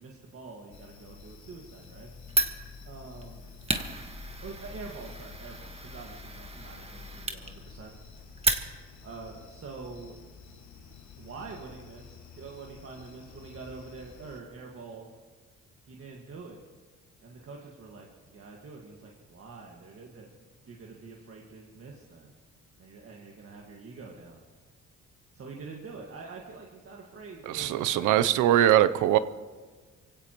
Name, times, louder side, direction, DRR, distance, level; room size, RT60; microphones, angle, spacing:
voice 1, 0.0-2.1 2.8-3.6 4.4-7.9 9.0-10.2 11.2-15.1 15.9-16.6 17.2-22.3 22.8-24.4 25.3-28.2, right 4 dB, 50° right, 0 dB, 1.8 m, -45 dB
sound 1, 0.7-14.4, left 4 dB, 70° left, 1.8 m, -49 dB
Fire, 2.3-9.1, right 3 dB, 20° right, 1.4 m, -34 dB
voice 2, 27.5-29.2, right 12 dB, 90° right, 13 dB, 0.6 m, -22 dB
24.0 x 16.5 x 3.0 m, 1.4 s
cardioid pair, 90°, 30 cm